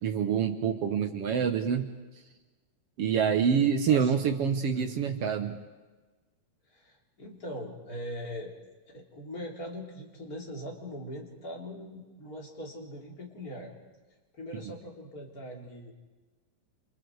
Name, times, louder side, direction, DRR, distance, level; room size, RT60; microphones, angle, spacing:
voice 1, 0.0-1.9 3.0-5.6, right 7 dB, 60° right, 7 dB, 1.9 m, -26 dB
voice 2, 3.9-4.3 4.7-5.1 6.7-8.5 8.9-13.8 14.3-15.9, equal, 30° left, 0 dB, 3.9 m, -41 dB
29.0 x 27.5 x 4.8 m, 1.2 s
omnidirectional pair, 3.5 m